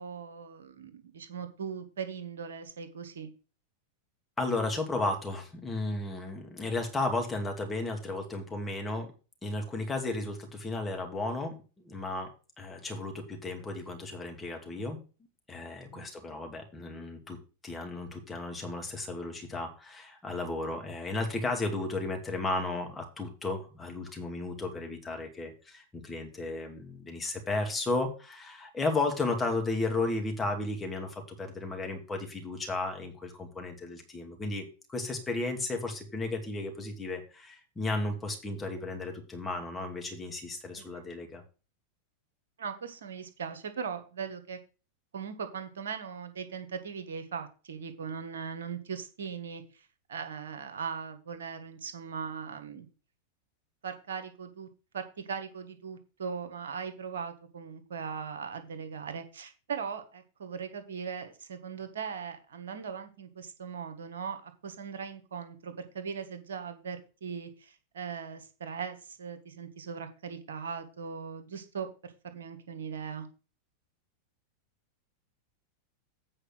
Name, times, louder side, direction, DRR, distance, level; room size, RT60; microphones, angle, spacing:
voice 1, 0.0-3.3 15.9-16.1 40.7-41.0 42.6-44.6 45.1-52.9 53.8-54.7 54.9-73.3, right 6 dB, 65° right, 8 dB, 1.4 m, -39 dB
voice 2, 4.4-9.1 9.4-12.3 12.6-15.0 15.5-17.4 17.6-41.4, left 2 dB, 15° left, 3 dB, 2.5 m, -34 dB
8.7 x 4.8 x 6.2 m, 0.34 s
figure-of-eight pair, 90°, 0 cm